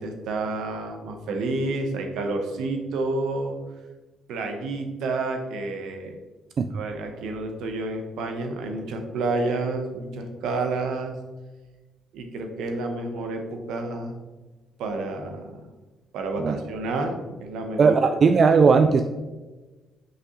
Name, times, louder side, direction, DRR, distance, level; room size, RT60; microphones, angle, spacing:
voice 1, 0.0-3.6 4.3-6.2 6.7-11.1 12.1-14.1 14.8-15.6 16.1-17.9, right 2 dB, 85° right, 4 dB, 0.9 m, -29 dB
voice 2, 17.8-19.0, right 5 dB, 50° right, 7 dB, 0.3 m, -17 dB
6.0 x 5.5 x 3.0 m, 1.2 s
cardioid pair, 90°, 0 cm